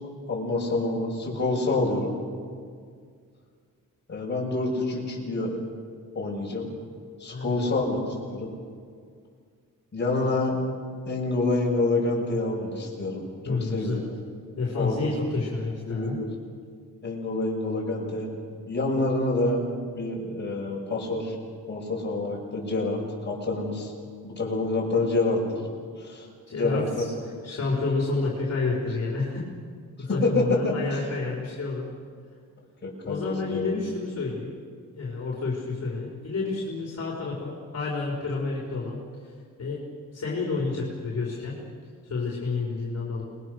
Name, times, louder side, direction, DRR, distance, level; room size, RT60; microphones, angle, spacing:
voice 1, 0.3-2.1 4.1-5.6 6.1-6.7 7.2-8.5 9.9-10.6 11.1-13.2 13.5-14.0 14.8-15.3 15.8-16.3 17.0-18.3 18.7-19.6 19.9-21.3 21.7-23.9 24.2-25.4 26.0-27.1 30.2-30.7 32.8-33.7, left 2 dB, 30° left, -2 dB, 6.1 m, -27 dB
voice 2, 7.3-7.7 13.4-14.0 14.6-16.2 26.5-27.1 27.4-29.4 30.0-31.9 33.0-34.5 34.9-39.3 39.6-39.8 40.1-41.5 42.0-43.2, left 3 dB, 45° left, -4 dB, 5.0 m, -29 dB
29.0 x 21.5 x 6.5 m, 2.1 s
wide cardioid pair, 145°, 34 cm